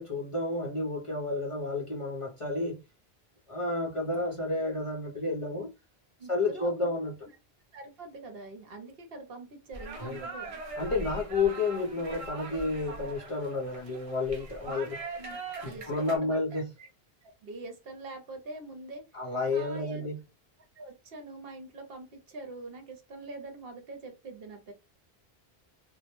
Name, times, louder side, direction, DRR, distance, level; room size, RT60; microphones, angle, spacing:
voice 1, 0.0-2.8 3.5-5.7 6.3-7.1 10.0-10.2 10.8-15.0 15.6-16.7 19.1-20.2, left 3 dB, 40° left, 0.5 m, -31 dB
voice 2, 6.2-6.9 7.7-10.6 14.7-14.8 15.1-16.9 17.2-19.0 19.5-20.0 20.8-24.7, right 2 dB, 70° right, 0.9 m, -44 dB
sound 1, 9.7-16.2, right 2 dB, 45° right, 0.5 m, -41 dB
2.1 x 2.0 x 2.8 m
omnidirectional pair, 1.1 m